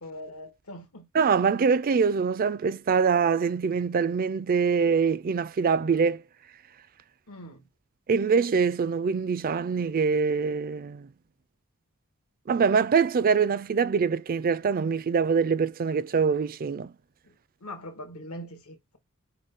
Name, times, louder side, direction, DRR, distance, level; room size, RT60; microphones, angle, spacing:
voice 1, 0.0-1.1 7.3-7.7 17.2-19.0, left 1 dB, 80° left, 1.5 m, -42 dB
voice 2, 1.1-6.2 8.1-11.1 12.5-16.9, right 5 dB, 40° right, 0.4 m, -24 dB
6.5 x 2.2 x 3.7 m
head